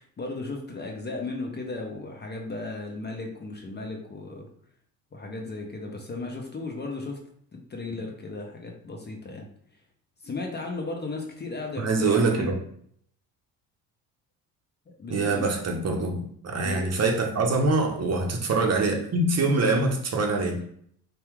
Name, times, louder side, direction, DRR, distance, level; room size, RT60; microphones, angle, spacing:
voice 1, 0.0-4.5 5.1-7.2 7.5-9.5 10.2-12.6 15.0-15.4 16.6-16.9, left 3 dB, 20° left, 1 dB, 0.7 m, -35 dB
voice 2, 11.8-12.5 15.1-20.6, right 3 dB, 35° right, 2 dB, 0.8 m, -24 dB
2.8 x 2.3 x 3.5 m, 0.64 s
hypercardioid pair, 60°, 45 cm